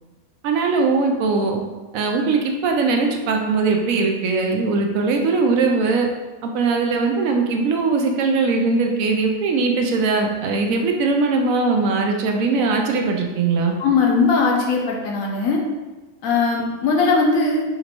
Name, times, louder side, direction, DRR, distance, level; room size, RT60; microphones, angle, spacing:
voice 1, 0.4-1.6 1.9-6.1 6.4-13.7, right 4 dB, 75° right, 2 dB, 0.9 m, -20 dB
voice 2, 13.8-15.6 16.2-17.6, left 4 dB, 70° left, -1 dB, 1.1 m, -19 dB
5.2 x 2.6 x 2.9 m, 1.2 s
omnidirectional pair, 1.5 m